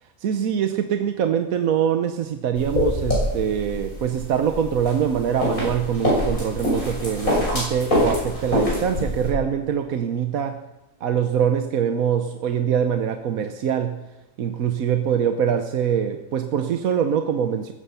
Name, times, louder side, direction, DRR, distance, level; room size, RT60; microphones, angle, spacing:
voice 1, 0.2-10.6 11.0-14.0 14.4-17.7, right 8 dB, 75° right, 7 dB, 1.3 m, -23 dB
sound 1, 2.6-9.3, left 1 dB, 70° left, 6.9 m, -25 dB
16.0 x 14.0 x 5.7 m, 1.0 s
omnidirectional pair, 1.5 m